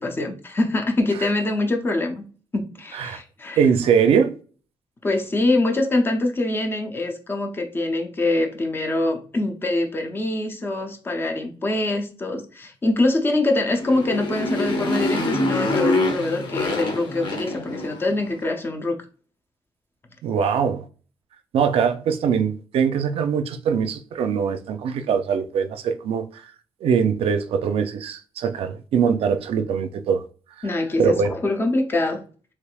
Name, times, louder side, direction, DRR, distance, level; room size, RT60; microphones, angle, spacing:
voice 1, 0.0-2.2 2.5-3.6 5.0-19.0 30.6-32.2, left 2 dB, 25° left, 0.5 m, -24 dB
voice 2, 3.6-4.3 20.2-20.9 21.5-26.4 26.8-30.2 31.0-31.3, right 6 dB, 80° right, 0.4 m, -22 dB
Motorcycle, 13.6-18.2, left 2 dB, 55° left, 0.9 m, -25 dB
3.3 x 3.1 x 2.3 m
wide cardioid pair, 155°, 10 cm